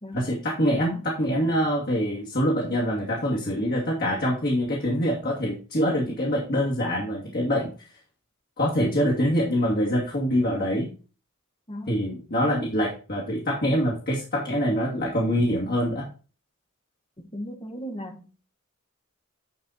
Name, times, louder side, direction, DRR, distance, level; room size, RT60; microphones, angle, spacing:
voice 1, 0.1-7.7 8.6-10.9 11.9-16.1, equal, 45° left, 2.5 m, -25 dB
voice 2, 11.7-12.0 17.2-18.5, equal, 25° left, 1.4 m, -37 dB
11.0 x 4.4 x 4.3 m
head